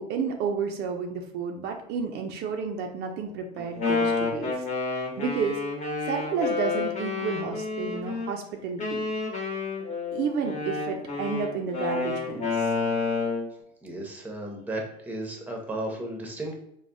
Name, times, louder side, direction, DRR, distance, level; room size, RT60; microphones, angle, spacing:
voice 1, 0.0-5.6 6.0-9.0 10.1-12.7, right 6 dB, 60° right, 4 dB, 0.4 m, -31 dB
Wind instrument woodwind instrument, 3.6-8.3 8.8-13.5, left 4 dB, 40° left, 1.0 m, -29 dB
voice 2, 13.8-16.5, right 1 dB, 10° right, 1 dB, 0.7 m, -34 dB
3.3 x 2.1 x 2.5 m, 0.74 s
cardioid pair, 110°, 19 cm